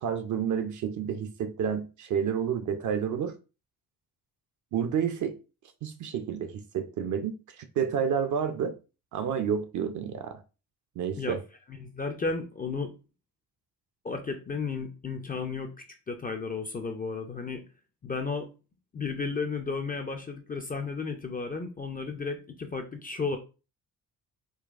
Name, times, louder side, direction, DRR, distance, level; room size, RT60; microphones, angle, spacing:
voice 1, 0.0-3.3 4.7-5.4 5.8-8.7 9.1-10.4 11.0-11.4, right 7 dB, 40° right, 0.5 m, -30 dB
voice 2, 11.7-12.9 14.0-17.6 18.0-18.5 18.9-23.4, left 4 dB, 20° left, 0.4 m, -33 dB
3.9 x 2.2 x 2.4 m
hypercardioid pair, 45°, 48 cm